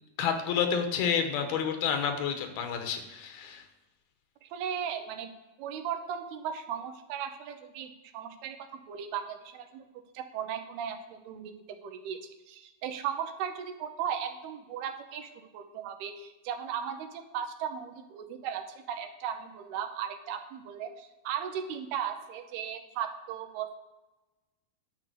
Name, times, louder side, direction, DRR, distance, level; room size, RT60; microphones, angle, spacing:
voice 1, 0.2-3.6, left 7 dB, 80° left, 6 dB, 3.0 m, -29 dB
voice 2, 4.4-5.3 5.6-9.9 10.1-11.5 11.8-12.2 12.5-23.7, right 8 dB, 85° right, 7 dB, 2.9 m, -37 dB
10.5 x 6.8 x 6.7 m, 1.1 s
omnidirectional pair, 4.4 m